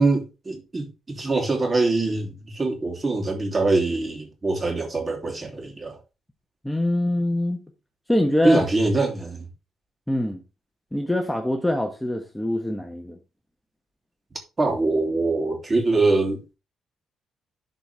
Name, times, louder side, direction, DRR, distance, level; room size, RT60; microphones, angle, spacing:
voice 1, 0.0-6.0 8.4-9.5 14.6-16.4, right 3 dB, 30° right, 3.0 m, -23 dB
voice 2, 6.6-7.6 8.1-8.6 10.1-10.4 10.9-13.2, left 1 dB, 5° left, 1.3 m, -24 dB
12.0 x 4.6 x 3.5 m
cardioid pair, 90°, 0 cm